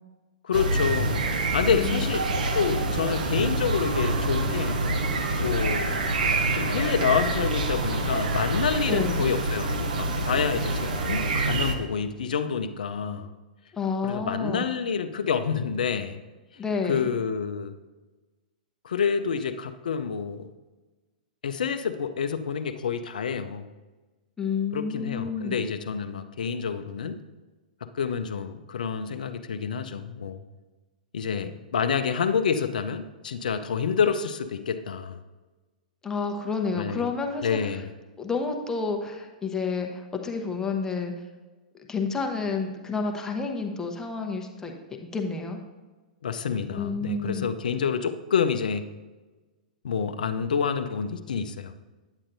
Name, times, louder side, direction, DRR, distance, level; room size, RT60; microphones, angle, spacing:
voice 1, 0.4-2.2 2.5-4.8 5.4-6.0 6.2-13.3 14.0-16.2 16.9-17.7 18.8-20.5 21.4-23.7 24.7-27.2 27.9-30.4 31.1-35.2 36.7-37.1 37.4-37.9 46.2-48.9 49.8-51.7, left 6 dB, 70° left, 9 dB, 0.5 m, -28 dB
sound 1, 0.5-11.8, right 2 dB, 65° right, 0.9 m, -26 dB
voice 2, 1.8-2.1 8.9-9.2 13.7-14.7 16.6-17.1 24.4-25.6 36.0-37.8 38.2-41.1 41.9-44.7 45.0-45.6 46.7-47.5, left 4 dB, 10° left, 2 dB, 0.9 m, -30 dB
8.9 x 8.4 x 2.7 m, 1.2 s
figure-of-eight pair, 110°, 5 cm